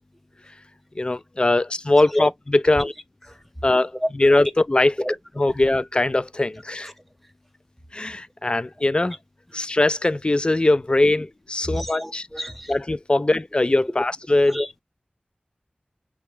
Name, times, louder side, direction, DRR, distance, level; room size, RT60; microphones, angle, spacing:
voice 1, 1.0-2.9 3.6-4.9 5.4-6.9 7.9-9.2 9.5-12.3 12.7-14.6, left 2 dB, 30° left, 0.3 m, -21 dB
voice 2, 11.6-12.7 14.5-14.7, left 1 dB, 5° left, 0.7 m, -27 dB
5.6 x 2.1 x 3.1 m
wide cardioid pair, 55°, 3 cm